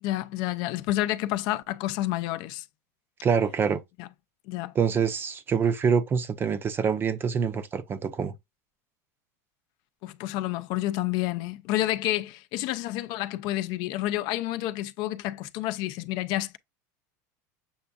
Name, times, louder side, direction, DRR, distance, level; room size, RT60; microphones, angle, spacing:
voice 1, 0.0-2.6 4.0-4.1 4.5-4.7 10.0-16.6, left 15 dB, 55° left, 0.4 m, -29 dB
voice 2, 3.2-3.8 4.8-8.3, right 6 dB, 25° right, 0.5 m, -25 dB
7.0 x 2.5 x 2.3 m
supercardioid pair, 120°, 9 cm